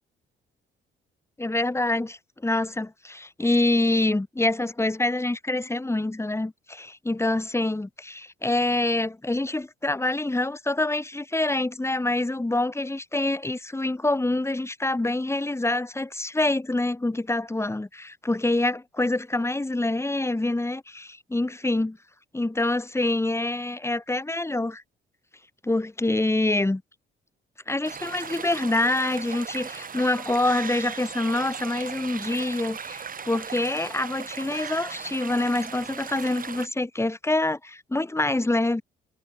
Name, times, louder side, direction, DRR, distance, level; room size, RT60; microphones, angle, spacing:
voice 1, 1.4-22.0 22.3-24.8 25.6-26.8 27.7-38.8, left 2 dB, 15° left, 5.5 m, -26 dB
sound 1, 27.8-36.7, right 6 dB, 45° right, 7.1 m, -37 dB
cardioid pair, 90°, 20 cm